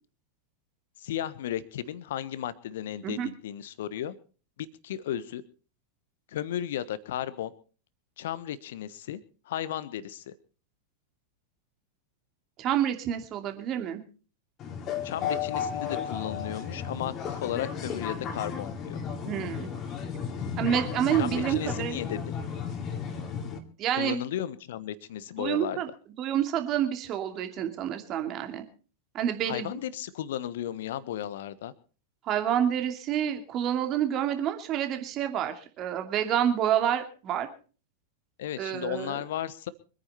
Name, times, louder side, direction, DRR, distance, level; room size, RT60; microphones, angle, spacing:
voice 1, 1.0-4.1 4.6-5.4 6.3-7.5 8.2-9.2 9.5-10.3 15.0-19.0 21.2-22.4 24.0-25.8 29.5-31.7 38.4-39.7, left 11 dB, 55° left, 16 dB, 1.3 m, -34 dB
voice 2, 12.6-14.0 19.3-19.7 20.6-22.0 23.8-24.2 25.4-25.9 26.2-28.6 29.1-29.8 32.2-37.5 38.6-39.2, right 10 dB, 35° right, 6 dB, 2.6 m, -28 dB
sound 1, 14.6-23.6, left 7 dB, 30° left, 2.7 m, -34 dB
25.0 x 9.7 x 4.3 m, 0.39 s
figure-of-eight pair, 90°, 0 cm